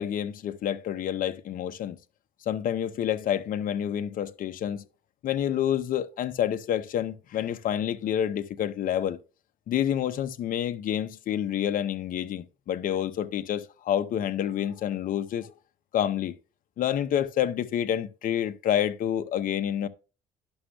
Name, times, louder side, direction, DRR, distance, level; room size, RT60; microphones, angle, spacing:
voice 1, 0.0-2.0 2.5-4.8 5.2-9.2 9.7-15.5 15.9-16.4 16.8-19.9, left 10 dB, 55° left, 0.7 m, -28 dB
11.5 x 6.2 x 2.3 m
cardioid pair, 110°, 17 cm